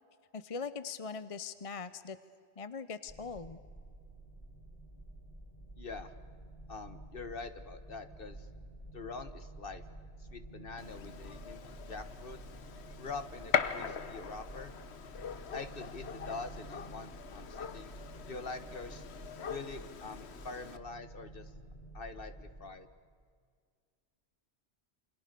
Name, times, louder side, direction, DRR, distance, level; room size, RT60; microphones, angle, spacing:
voice 1, 0.3-2.2 2.6-3.6, left 5 dB, 35° left, 13 dB, 0.8 m, -41 dB
sound 1, 3.1-22.6, right 2 dB, 20° left, 5.8 m, -50 dB
voice 2, 5.8-6.1 6.7-8.5 8.9-9.8 10.2-11.6 11.9-12.4 13.0-14.7 15.5-17.9 18.3-19.1 19.5-21.5 21.9-22.9, left 4 dB, 55° left, 10 dB, 1.7 m, -44 dB
Gunshot gunfire, 10.8-20.8, left 6 dB, 80° left, 1.3 m, -40 dB
28.5 x 26.0 x 6.8 m, 2.1 s
omnidirectional pair, 1.1 m